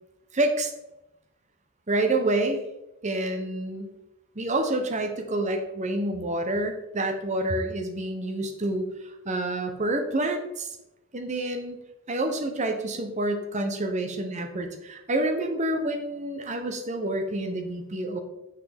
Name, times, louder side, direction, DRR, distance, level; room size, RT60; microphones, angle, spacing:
voice 1, 0.3-0.7 1.9-2.6 3.0-3.9 4.4-8.9 9.2-10.7 11.1-11.8 12.1-18.2, right 1 dB, 30° right, 5 dB, 0.8 m, -28 dB
6.0 x 5.9 x 3.4 m, 0.91 s
head